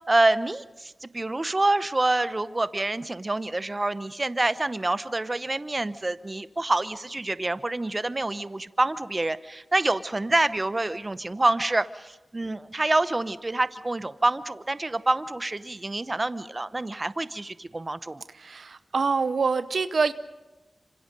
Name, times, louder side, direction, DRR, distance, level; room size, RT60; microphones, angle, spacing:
voice 1, 0.1-18.2, right 2 dB, 35° right, 14 dB, 0.8 m, -27 dB
voice 2, 18.3-20.1, right 4 dB, 75° right, 12 dB, 0.8 m, -25 dB
26.5 x 26.0 x 5.3 m, 1.1 s
cardioid pair, 40°, 0 cm